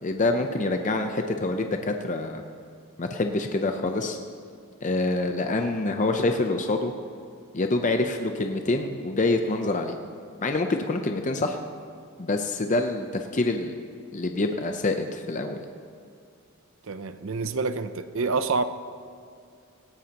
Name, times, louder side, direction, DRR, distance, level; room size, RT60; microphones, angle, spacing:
voice 1, 0.0-2.4 3.0-4.2 4.8-6.9 7.5-10.0 10.4-11.6 12.2-13.7 14.1-15.6, left 2 dB, 35° left, 5 dB, 0.6 m, -26 dB
voice 2, 16.9-18.6, right 4 dB, 60° right, 11 dB, 0.6 m, -27 dB
17.5 x 16.5 x 2.9 m, 2.3 s
head